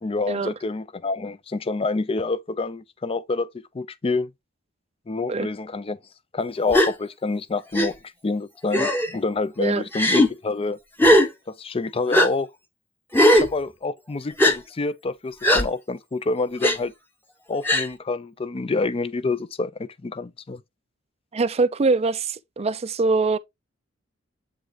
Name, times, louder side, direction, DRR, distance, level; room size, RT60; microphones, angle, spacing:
voice 1, 0.0-4.3 5.1-6.0 6.3-7.9 8.2-10.8 11.5-12.5 13.3-16.9 17.5-20.6, left 3 dB, 30° left, 0.5 m, -27 dB
Gasp, 6.7-6.9 7.7-7.9 8.7-9.1 9.9-10.3 11.0-11.3 12.1-12.3 13.1-13.5 14.4-14.5 15.4-15.6 16.6-16.8 17.6-17.9, left 1 dB, 10° left, 1.0 m, -17 dB
voice 2, 21.3-23.4, right 3 dB, 30° right, 0.4 m, -23 dB
7.9 x 3.6 x 3.4 m
head